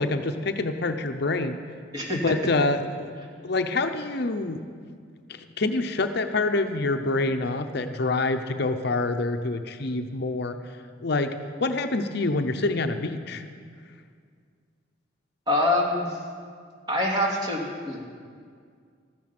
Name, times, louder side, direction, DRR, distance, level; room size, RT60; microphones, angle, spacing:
voice 1, 0.0-1.6 2.1-3.1 3.4-4.6 5.3-10.6 11.0-13.4, left 2 dB, 60° left, 7 dB, 0.7 m, -26 dB
voice 2, 15.5-16.2 16.9-18.0, left 1 dB, 25° right, -2 dB, 2.5 m, -25 dB
14.0 x 14.0 x 6.0 m, 2.1 s
head